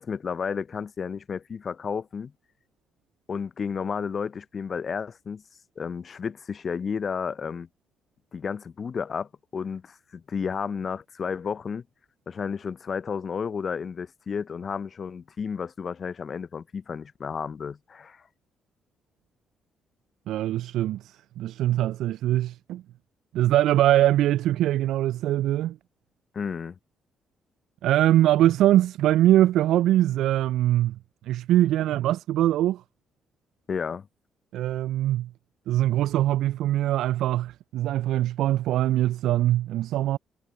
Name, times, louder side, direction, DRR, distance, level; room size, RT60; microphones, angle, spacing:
voice 1, 0.0-2.3 3.3-5.4 5.8-7.7 8.3-11.8 12.3-18.3 26.3-26.8 33.7-34.1, left 6 dB, 45° left, 1.0 m, -32 dB
voice 2, 20.3-22.8 23.3-25.8 27.8-31.0 31.2-32.8 34.5-35.3 35.7-40.2, right 13 dB, 65° right, 0.7 m, -22 dB
figure-of-eight pair, 40°, 0 cm